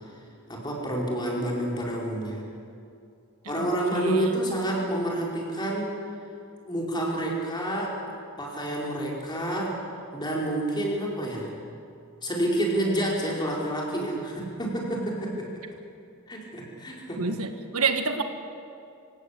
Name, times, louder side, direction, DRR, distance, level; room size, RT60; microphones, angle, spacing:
voice 1, 0.5-2.4 3.5-5.9 6.7-8.0 8.4-9.8 10.1-11.5 12.2-15.5 16.3-17.3, right 1 dB, 20° left, -3 dB, 4.8 m, -28 dB
voice 2, 3.4-4.5 17.2-18.2, right 4 dB, 80° right, 7 dB, 1.6 m, -29 dB
26.0 x 17.5 x 8.4 m, 2.5 s
head